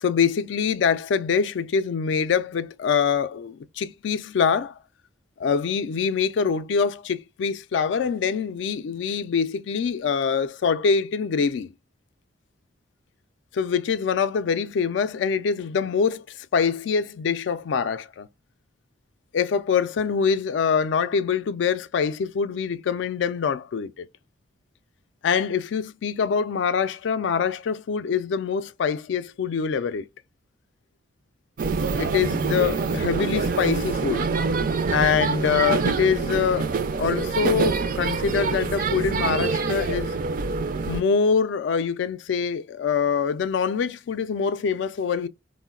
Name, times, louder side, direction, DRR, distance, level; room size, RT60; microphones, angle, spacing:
voice 1, 0.0-4.7 5.4-11.7 13.5-18.3 19.3-24.1 25.2-30.1 32.0-34.3 34.9-40.2 40.9-45.3, left 6 dB, 70° left, 0.3 m, -24 dB
sound 1, 31.6-41.0, right 4 dB, 45° right, 0.3 m, -25 dB
3.7 x 2.1 x 2.3 m
head